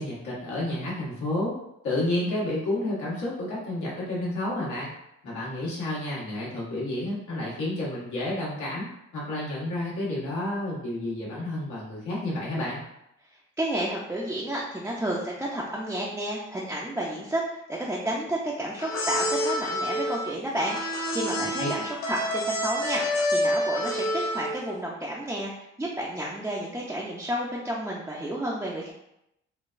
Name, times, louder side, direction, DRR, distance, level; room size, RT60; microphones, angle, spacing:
voice 1, 0.0-1.5 1.8-4.9 5.2-8.9 9.1-12.8 21.4-21.7, left 1 dB, 80° left, -6 dB, 1.3 m, -30 dB
voice 2, 13.6-28.9, right 1 dB, 10° right, -5 dB, 0.4 m, -31 dB
sound 1, 18.8-24.7, equal, 65° left, 0.9 m, -28 dB
3.8 x 2.2 x 2.5 m, 0.82 s
cardioid pair, 90°, 30 cm